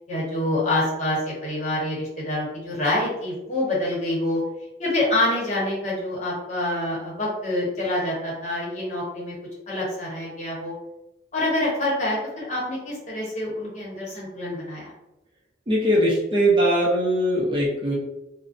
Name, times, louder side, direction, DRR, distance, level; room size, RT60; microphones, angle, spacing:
voice 1, 0.1-4.4 4.8-9.3 9.7-10.7 11.3-14.9, left 1 dB, 40° left, -6 dB, 0.9 m, -26 dB
voice 2, 15.7-18.0, right 1 dB, 30° right, -5 dB, 0.5 m, -21 dB
2.4 x 2.1 x 2.4 m, 0.90 s
head